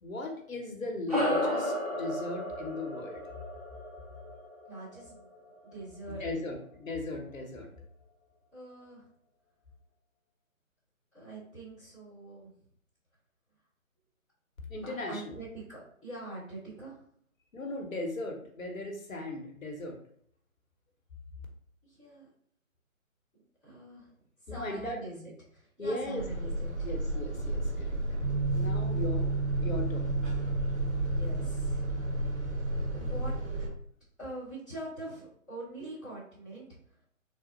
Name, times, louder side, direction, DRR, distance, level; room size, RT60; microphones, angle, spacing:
voice 1, 0.0-3.2 6.1-7.7 14.7-15.4 17.5-20.0 24.5-25.0 25.8-26.2 26.8-28.2 28.5-29.3 29.6-30.1, left 2 dB, 70° left, 1 dB, 1.0 m, -37 dB
sound 1, 1.1-5.8, left 1 dB, 30° right, 0.5 m, -33 dB
voice 2, 4.7-5.3 5.7-6.2 8.5-9.0 11.1-12.5 14.8-17.0 21.8-22.3 23.6-24.1 24.4-26.9 29.2-29.3 31.0-31.8 32.9-33.3 34.2-36.8, right 1 dB, ahead, -20 dB, 0.8 m, -44 dB
sound 2, 26.2-33.7, right 1 dB, 60° right, 1.4 m, -33 dB
sound 3, 28.2-33.4, right 3 dB, 30° left, 1.0 m, -34 dB
3.5 x 2.1 x 4.1 m, 0.64 s
figure-of-eight pair, 145°, 41 cm